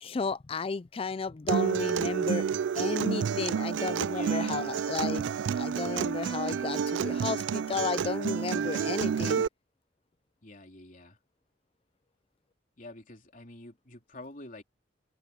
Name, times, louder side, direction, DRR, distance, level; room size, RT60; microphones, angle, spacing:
voice 1, 0.0-2.5 2.8-5.3 5.6-9.4, left 4 dB, 30° left, 0.4 m, -33 dB
Acoustic guitar, 1.5-9.5, right 7 dB, 75° right, 0.3 m, -29 dB
voice 2, 4.0-4.8 10.4-11.2 12.8-14.6, left 2 dB, 45° left, 3.5 m, -47 dB
open air
head